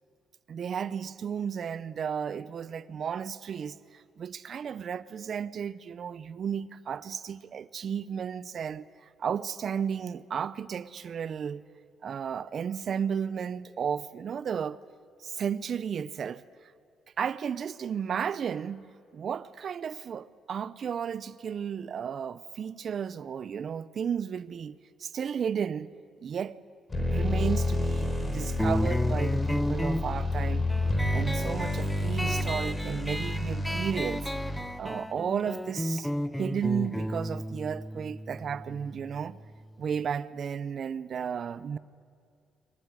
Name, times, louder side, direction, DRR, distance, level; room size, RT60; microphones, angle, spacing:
voice 1, 0.5-11.6 12.0-14.8 15.2-16.7 17.2-25.9 26.2-26.6 27.0-30.7 31.1-34.3 34.8-36.1 36.4-39.4 39.8-41.8, right 7 dB, 55° right, 0.8 m, -33 dB
sound 1, 26.9-34.9, left 1 dB, 25° left, 4.5 m, -29 dB
sound 2, 28.6-39.7, equal, 5° left, 0.7 m, -34 dB
24.5 x 18.5 x 9.8 m
cardioid pair, 90°, 0 cm